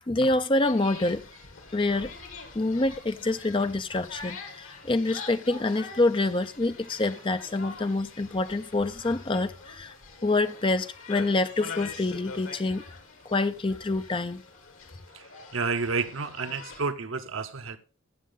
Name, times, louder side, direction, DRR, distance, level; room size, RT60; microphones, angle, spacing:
voice 1, 0.1-1.2 1.7-2.1 2.5-9.9 10.2-12.8 13.3-14.4, left 2 dB, 25° left, 0.5 m, -26 dB
sound 1, 0.6-16.8, left 4 dB, 85° left, 2.3 m, -44 dB
voice 2, 15.5-17.8, right 4 dB, 75° right, 0.9 m, -30 dB
15.0 x 6.4 x 3.9 m
head